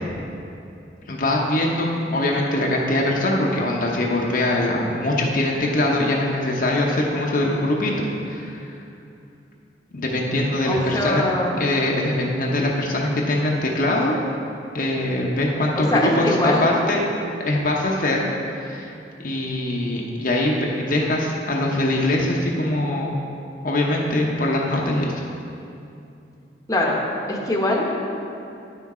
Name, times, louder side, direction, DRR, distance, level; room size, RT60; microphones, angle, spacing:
voice 1, 1.1-8.7 9.9-11.2 11.6-14.2 14.7-17.0 17.4-18.9 19.2-23.2 23.6-25.2, left 1 dB, 50° left, -2 dB, 0.8 m, -22 dB
voice 2, 10.6-11.5 15.7-16.7 26.7-27.0 27.3-28.1, left 1 dB, 20° left, -2 dB, 0.9 m, -22 dB
9.8 x 6.0 x 4.3 m, 2.7 s
head